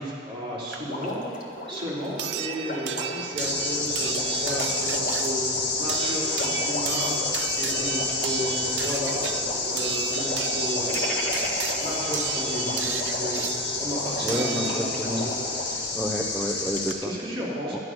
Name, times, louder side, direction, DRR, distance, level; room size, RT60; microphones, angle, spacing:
voice 1, 0.0-11.2 11.5-13.5 13.8-15.9 17.0-17.8, equal, 30° right, -8 dB, 3.5 m, -34 dB
sound 1, 0.7-0.8 2.2-15.2 16.4-16.5 16.9-17.0, right 10 dB, 70° right, 0.5 m, -33 dB
Water, 0.8-15.8 16.8-16.9, equal, 50° left, 1.6 m, -36 dB
sound 2, 3.4-16.9, left 3 dB, 80° left, 1.7 m, -29 dB
voice 2, 14.2-15.3 15.9-17.1, equal, ahead, -2 dB, 0.6 m, -29 dB
11.5 x 11.0 x 6.1 m, 2.5 s
head